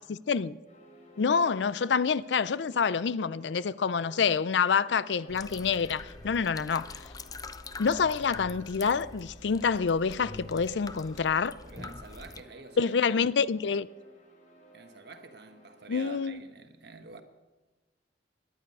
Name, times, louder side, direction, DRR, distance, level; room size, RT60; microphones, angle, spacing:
voice 1, 0.1-0.6 1.2-7.1 7.8-11.5 12.8-13.9 15.9-16.4, left 6 dB, 75° left, 0.5 m, -27 dB
sound 1, 0.7-16.3, right 1 dB, 45° left, 3.5 m, -56 dB
sound 2, 5.3-12.4, left 3 dB, 20° left, 0.5 m, -44 dB
voice 2, 11.6-12.9 14.7-17.2, right 3 dB, 65° right, 1.3 m, -48 dB
18.0 x 11.5 x 5.4 m
head